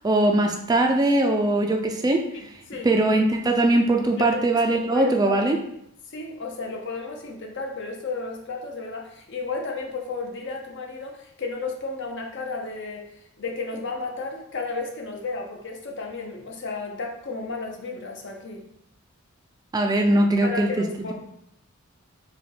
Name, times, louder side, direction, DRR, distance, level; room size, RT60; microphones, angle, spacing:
voice 1, 0.0-2.3 2.8-5.6 19.7-20.7 21.0-21.1, right 1 dB, 20° right, 4 dB, 0.3 m, -21 dB
voice 2, 2.3-2.9 4.0-4.4 4.7-5.3 6.1-13.1 13.4-18.6 20.4-21.1, left 3 dB, 55° left, 1 dB, 0.7 m, -33 dB
4.8 x 2.2 x 3.3 m, 0.75 s
head